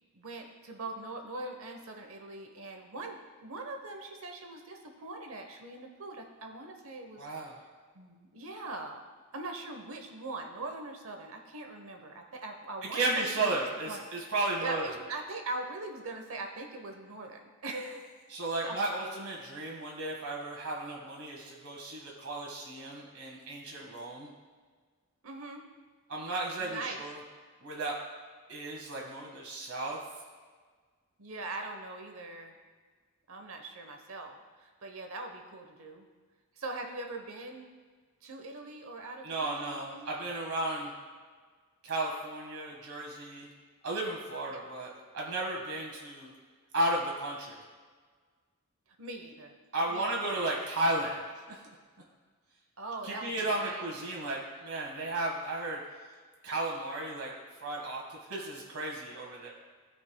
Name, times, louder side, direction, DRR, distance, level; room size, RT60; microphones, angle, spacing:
voice 1, 0.1-7.4 7.9-9.0 9.3-13.5 13.9-14.0 14.6-19.0 25.2-25.6 26.6-27.0 31.2-32.6 33.3-36.0 36.6-37.7 38.2-40.3 44.5-44.6 49.0-49.6 49.9-50.5 52.8-53.9, right 2 dB, 65° right, 4 dB, 0.9 m, -41 dB
voice 2, 7.2-7.5 12.9-14.9 18.3-24.3 26.1-27.2 27.6-28.0 28.5-30.0 39.2-40.9 41.8-43.5 43.8-46.3 46.7-47.6 49.7-51.6 53.0-55.8 56.4-57.3 57.6-59.5, right 2 dB, 80° right, -2 dB, 1.6 m, -34 dB
16.0 x 5.4 x 2.2 m, 1.5 s
head